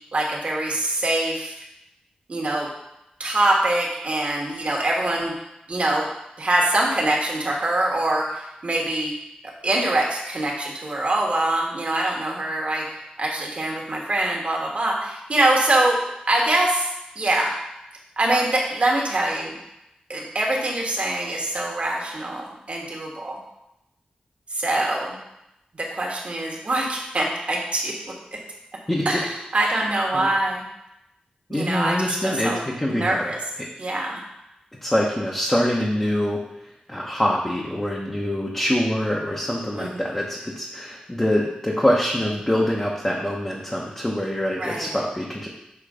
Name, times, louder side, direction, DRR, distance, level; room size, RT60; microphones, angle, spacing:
voice 1, 0.1-1.5 2.3-2.7 3.2-5.3 5.7-6.1 6.4-9.1 9.4-16.0 16.3-16.8 17.1-17.6 18.2-19.6 20.1-23.4 24.5-25.2 25.8-27.9 29.0-30.6 31.5-32.6 32.9-33.4 33.8-34.2 39.8-40.0 44.6-44.9, right 1 dB, 50° right, -1 dB, 1.4 m, -24 dB
voice 2, 29.8-30.3 31.5-33.2 33.6-33.7 34.8-36.4 36.9-45.5, left 1 dB, 15° left, -4 dB, 0.9 m, -24 dB
6.8 x 3.2 x 5.0 m, 0.89 s
wide cardioid pair, 85°, 3 cm